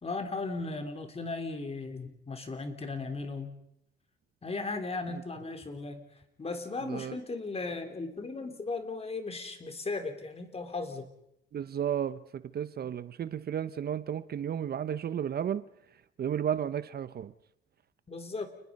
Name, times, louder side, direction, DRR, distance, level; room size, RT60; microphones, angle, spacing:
voice 1, 0.0-3.5 4.4-6.0 6.4-11.1 18.1-18.5, left 3 dB, 30° left, 3.7 m, -36 dB
voice 2, 6.8-7.2 11.5-15.6 16.2-17.3, right 9 dB, 50° right, 0.8 m, -33 dB
29.5 x 20.5 x 5.4 m
cardioid pair, 90°, 20 cm